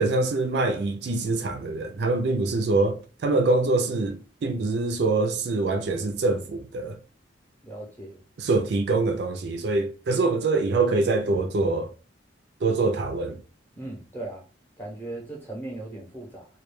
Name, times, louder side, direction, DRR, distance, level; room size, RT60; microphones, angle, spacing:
voice 1, 0.0-7.0 8.4-11.9 12.6-13.4, right 3 dB, 60° right, 0.4 m, -24 dB
voice 2, 7.6-8.2 13.8-14.4 14.8-16.5, right 2 dB, 10° left, 0.7 m, -37 dB
2.2 x 2.2 x 3.0 m
head